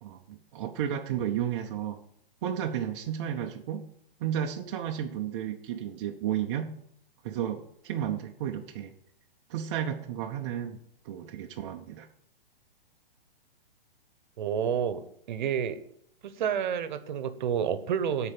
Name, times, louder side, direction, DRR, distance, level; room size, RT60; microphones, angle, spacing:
voice 1, 0.0-2.0 2.4-3.8 4.2-6.7 7.2-8.9 9.5-10.8 11.0-12.1, right 10 dB, 30° right, 2 dB, 0.6 m, -32 dB
voice 2, 14.4-15.8 16.2-18.3, right 8 dB, 50° right, 12 dB, 1.0 m, -29 dB
10.5 x 4.4 x 7.3 m, 0.69 s
hypercardioid pair, 145°, 29 cm